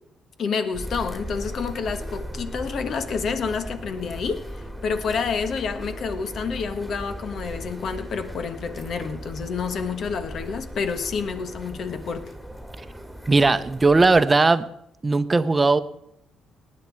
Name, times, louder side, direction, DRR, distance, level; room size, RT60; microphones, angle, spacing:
voice 1, 0.4-12.3, left 5 dB, 60° left, 1.4 m, -29 dB
sound 1, 0.7-14.2, equal, ahead, 2.3 m, -37 dB
voice 2, 13.3-14.6 15.0-15.8, right 3 dB, 25° right, 0.8 m, -18 dB
18.0 x 9.7 x 4.7 m
supercardioid pair, 75°, 0 cm